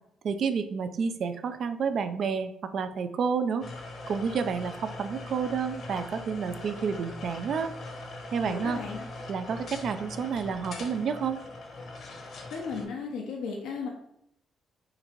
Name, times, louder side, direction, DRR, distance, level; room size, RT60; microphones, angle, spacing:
voice 1, 0.2-3.7 4.1-7.7 8.3-8.8 9.3-11.4, right 6 dB, 60° right, 9 dB, 0.4 m, -30 dB
sound 1, 3.6-12.8, left 2 dB, 65° left, 1.0 m, -41 dB
voice 2, 8.4-9.1 12.2-13.9, left 5 dB, 85° left, 0 dB, 0.6 m, -36 dB
3.9 x 2.7 x 4.4 m, 0.76 s
cardioid pair, 90°, 0 cm